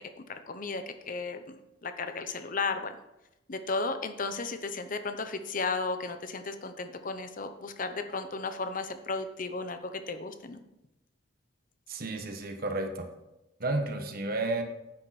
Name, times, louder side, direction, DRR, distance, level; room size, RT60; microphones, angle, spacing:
voice 1, 0.2-1.6 1.8-2.9 3.5-10.6, left 4 dB, 50° left, 9 dB, 0.9 m, -34 dB
voice 2, 11.9-13.1 13.6-14.6, right 2 dB, 55° right, 5 dB, 1.3 m, -32 dB
10.0 x 8.8 x 4.2 m, 0.93 s
head